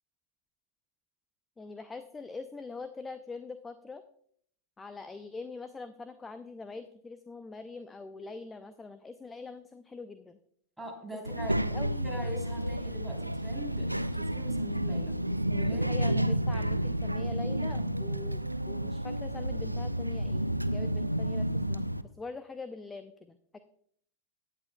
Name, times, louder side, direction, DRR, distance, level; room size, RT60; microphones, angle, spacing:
voice 1, 1.6-4.0 4.8-10.4 11.7-12.2 15.6-23.6, left 3 dB, 15° left, 11 dB, 0.6 m, -43 dB
voice 2, 10.8-11.7 12.0-15.9, right 1 dB, 5° right, -1 dB, 3.5 m, -42 dB
Child speech kid speaking, 11.2-22.0, right 1 dB, 85° right, 0.4 m, -31 dB
17.0 x 10.0 x 2.3 m, 0.64 s
figure-of-eight pair, 90°, 0 cm